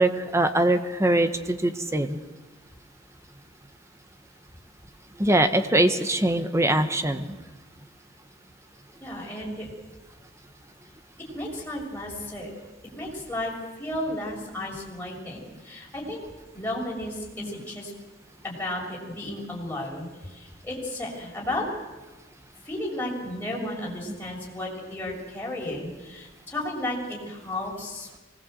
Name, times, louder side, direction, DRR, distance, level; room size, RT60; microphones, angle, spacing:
voice 1, 0.0-2.2 5.2-7.4 17.4-17.5, right 1 dB, 15° right, 8 dB, 1.4 m, -22 dB
voice 2, 9.0-9.7 11.3-12.5 12.9-16.2 16.5-17.9 18.4-21.6 22.6-28.1, left 1 dB, 10° left, -3 dB, 6.6 m, -33 dB
24.0 x 20.0 x 8.0 m, 1.2 s
head